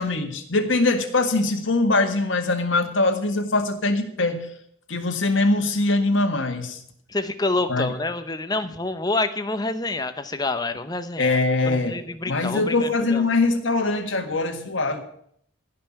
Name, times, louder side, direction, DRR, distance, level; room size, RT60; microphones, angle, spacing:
voice 1, 0.0-4.5 4.9-6.8 7.7-7.9 11.2-12.0 12.3-15.0, left 2 dB, 65° left, 5 dB, 1.8 m, -22 dB
voice 2, 7.1-11.4 11.7-13.2, left 2 dB, 20° left, 10 dB, 0.7 m, -27 dB
15.0 x 5.7 x 8.7 m, 0.66 s
head